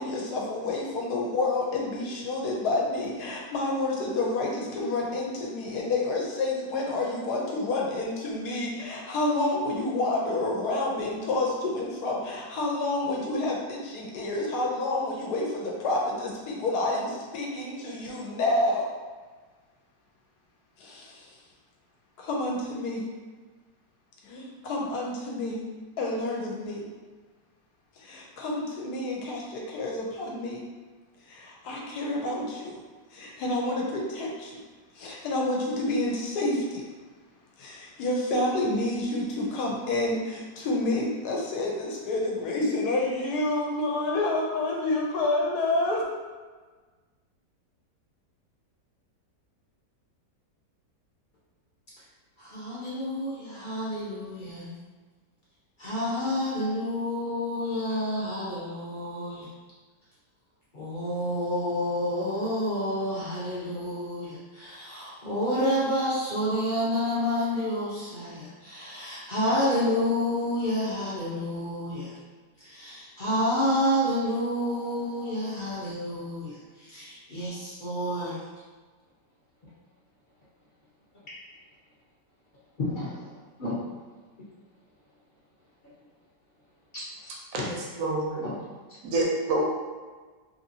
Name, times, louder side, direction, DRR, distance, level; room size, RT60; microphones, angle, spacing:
voice 1, 0.0-18.9 20.8-21.3 22.2-23.0 24.2-25.6 26.0-26.8 28.0-30.6 31.3-32.8 33.1-34.6 34.9-36.8 37.6-46.0, left 2 dB, 70° left, -2 dB, 1.1 m, -29 dB
voice 2, 52.5-54.7 55.8-59.5 60.7-72.1 72.7-76.5 76.9-78.4 82.8-83.1 83.6-83.8 87.6-87.7 88.4-88.5, left 1 dB, 45° left, -9 dB, 0.6 m, -29 dB
voice 3, 87.5-88.4 89.0-89.6, right 2 dB, 65° right, -3 dB, 0.8 m, -27 dB
2.9 x 2.7 x 2.7 m, 1.4 s
omnidirectional pair, 1.9 m